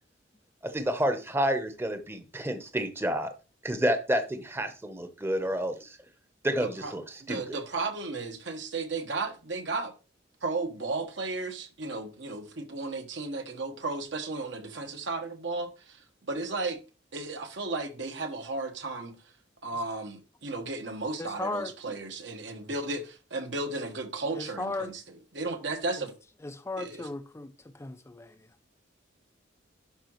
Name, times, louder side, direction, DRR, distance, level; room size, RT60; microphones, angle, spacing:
voice 1, 0.6-3.3 3.6-5.7 6.4-7.6, equal, 10° right, 0.8 m, -29 dB
voice 2, 6.6-6.9 7.2-9.9 10.4-16.0 16.3-16.8 17.1-19.2 19.6-24.9 25.3-26.1 26.8-27.1, right 3 dB, 70° right, 1.3 m, -34 dB
voice 3, 21.2-21.7 24.3-24.9 26.0-26.1 26.4-28.5, left 2 dB, 15° left, 0.4 m, -36 dB
11.5 x 4.8 x 3.0 m
head